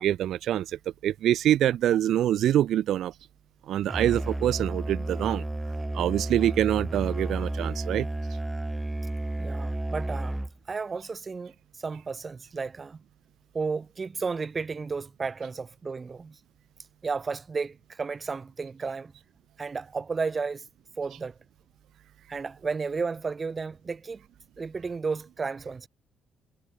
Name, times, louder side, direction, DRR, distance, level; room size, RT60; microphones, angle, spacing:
voice 1, 0.0-3.1 3.7-5.4 5.9-8.1, right 11 dB, 80° right, 0.3 m, -25 dB
Musical instrument, 3.9-10.7, right 1 dB, 10° right, 1.0 m, -32 dB
voice 2, 9.4-10.4 10.7-13.0 13.5-16.4 17.0-19.1 19.6-20.7 21.0-21.4 22.3-24.2 24.6-25.9, right 4 dB, 35° right, 0.7 m, -33 dB
cardioid pair, 95°, 0 cm